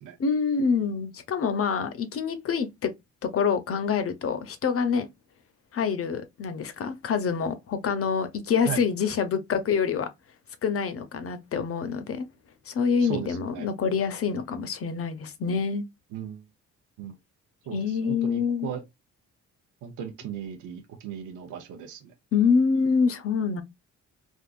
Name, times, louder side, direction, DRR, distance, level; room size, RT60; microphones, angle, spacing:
voice 1, 0.2-2.9 3.3-5.1 5.7-10.1 10.6-12.3 12.7-15.8 17.7-18.7 22.3-23.6, left 6 dB, 50° left, 0.7 m, -26 dB
voice 2, 13.0-13.7 16.1-16.4 17.0-17.2 17.7-18.8 19.8-22.1, right 8 dB, 85° right, 0.8 m, -36 dB
3.6 x 2.4 x 2.4 m
cardioid pair, 90°, 30 cm